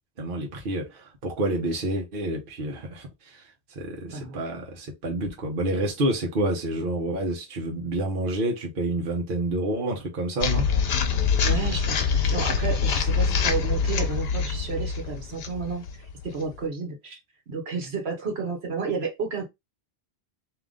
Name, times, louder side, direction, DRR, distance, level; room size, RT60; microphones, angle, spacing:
voice 1, 0.2-10.7, right 1 dB, 55° right, 1.1 m, -29 dB
voice 2, 4.1-4.4 11.4-17.2 17.5-19.5, right 5 dB, 70° right, 1.3 m, -31 dB
sound 1, 10.4-16.6, left 6 dB, 65° left, 1.0 m, -25 dB
3.8 x 2.9 x 3.5 m
omnidirectional pair, 1.1 m